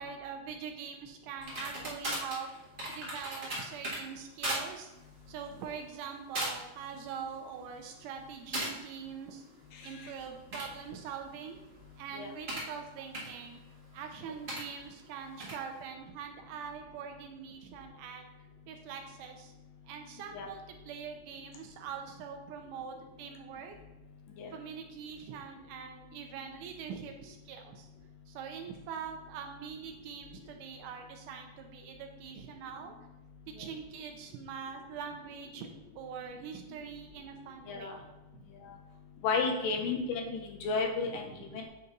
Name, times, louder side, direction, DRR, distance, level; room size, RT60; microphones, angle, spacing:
voice 1, 0.0-2.5 2.9-4.9 5.3-9.5 9.8-11.6 12.0-13.6 13.9-18.3 18.7-19.5 19.9-23.8 24.5-27.9 28.3-33.0 33.5-35.7 36.0-37.9 38.3-38.4 39.8-40.0 41.0-41.6, right 7 dB, 75° right, 4 dB, 2.1 m, -43 dB
sound 1, 1.4-4.0 4.4-4.6 5.0-5.3 5.9-6.1 6.3-6.8 7.1-7.6 8.5-8.7 10.3-12.7 13.1-13.3 14.5-14.6 15.4-15.6, right 1 dB, 35° right, 0.8 m, -37 dB
voice 2, 39.2-41.6, left 4 dB, 80° left, 2 dB, 2.6 m, -32 dB
8.4 x 4.2 x 3.9 m, 0.99 s
omnidirectional pair, 3.9 m